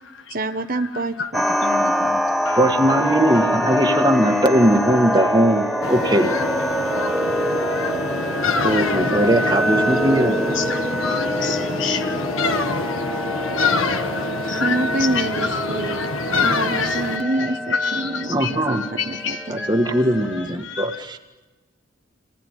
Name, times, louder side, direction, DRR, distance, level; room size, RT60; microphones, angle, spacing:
voice 1, 0.3-2.2 14.4-16.0 16.4-17.6 17.9-19.6, right 2 dB, 45° right, 6 dB, 1.4 m, -27 dB
sound 1, 1.3-20.5, equal, ahead, 1.0 m, -25 dB
voice 2, 2.6-6.4 8.6-10.6 18.3-18.9 19.5-21.2, right 1 dB, 20° right, 5 dB, 1.9 m, -20 dB
sound 2, 5.8-17.2, left 4 dB, 90° left, 1.7 m, -26 dB
voice 3, 10.6-12.3 14.1-14.7 15.1-16.0 16.8-19.7 20.6-20.8, left 5 dB, 65° left, 6 dB, 1.5 m, -29 dB
28.5 x 19.5 x 9.3 m, 1.2 s
head